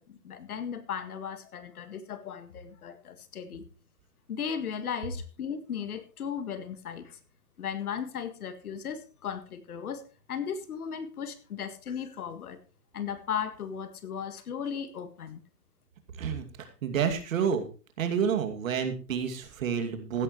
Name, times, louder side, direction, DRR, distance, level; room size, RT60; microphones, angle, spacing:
voice 1, 0.0-3.6 4.3-7.2 7.6-10.0 10.3-12.6 12.9-15.4, left 7 dB, 60° left, 11 dB, 1.9 m, -36 dB
voice 2, 16.2-17.6 18.0-20.2, right 7 dB, 55° right, 7 dB, 2.6 m, -29 dB
15.5 x 11.5 x 3.2 m, 0.34 s
hypercardioid pair, 155°, 49 cm